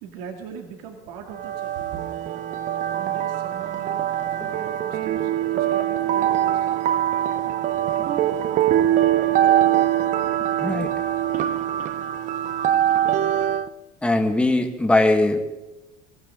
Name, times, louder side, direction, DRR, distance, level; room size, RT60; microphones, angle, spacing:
voice 1, 0.0-1.8 3.0-6.7, right 6 dB, 70° right, 3 dB, 2.1 m, -41 dB
sound 1, 1.3-13.7, right 11 dB, 35° right, 0.7 m, -23 dB
voice 2, 10.6-10.9 14.0-15.4, left 2 dB, 5° left, 4 dB, 1.5 m, -20 dB
24.0 x 15.5 x 3.7 m, 0.99 s
cardioid pair, 150°, 21 cm